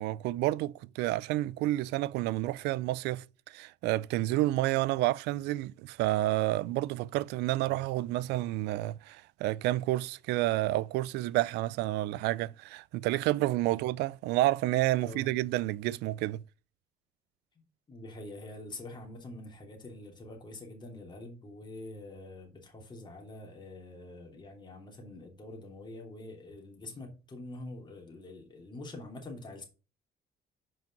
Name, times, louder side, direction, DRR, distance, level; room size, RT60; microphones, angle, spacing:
voice 1, 0.0-16.4, right 16 dB, 90° right, 0.4 m, -30 dB
voice 2, 15.0-15.5 17.9-29.6, left 2 dB, 25° left, 2.9 m, -45 dB
6.2 x 5.1 x 6.0 m
cardioid pair, 110°, 17 cm